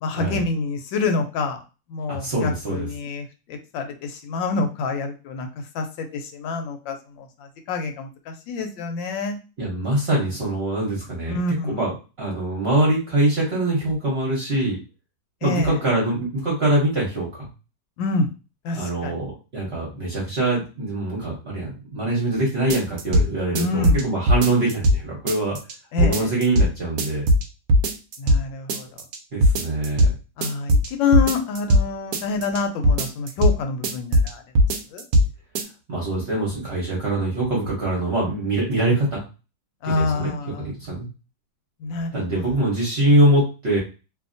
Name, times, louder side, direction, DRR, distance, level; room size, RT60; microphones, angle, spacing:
voice 1, 0.0-1.6 1.9-5.5 5.7-7.3 7.7-9.4 11.3-11.8 15.4-15.8 18.0-18.3 18.6-19.2 23.5-24.1 25.9-26.3 28.2-28.9 30.4-34.4 34.9-35.0 39.8-40.7 41.8-42.5, left 3 dB, 80° left, 5 dB, 1.3 m, -27 dB
voice 2, 2.1-2.9 9.6-11.4 11.7-11.9 12.2-14.8 15.4-17.5 18.7-25.6 26.0-27.2 29.3-30.1 35.9-39.2 39.8-40.3 40.6-41.1 42.1-43.8, right 1 dB, 45° right, -4 dB, 0.8 m, -23 dB
sound 1, 22.7-23.3 23.6-25.0 25.3-25.7 26.0-26.7 27.0-27.4 27.7-28.4 28.7-29.2 29.4-30.1 30.4-31.8 32.1-32.6 32.8-33.6 33.8-34.3 34.6-35.3 35.6-35.7, equal, 75° right, 0.8 m, -18 dB
2.7 x 2.6 x 2.5 m, 0.31 s
omnidirectional pair, 2.1 m